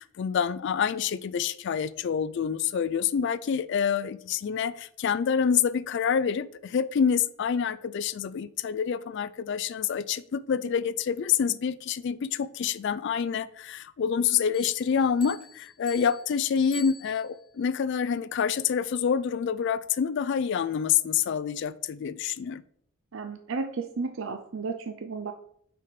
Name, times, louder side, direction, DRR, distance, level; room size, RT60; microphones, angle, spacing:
voice 1, 0.0-22.6, left 7 dB, 55° left, 0.3 m, -27 dB
Bell, 14.5-17.6, left 2 dB, 25° left, 1.0 m, -46 dB
voice 2, 23.1-25.3, right 4 dB, 60° right, 0.5 m, -33 dB
5.9 x 4.7 x 5.1 m
head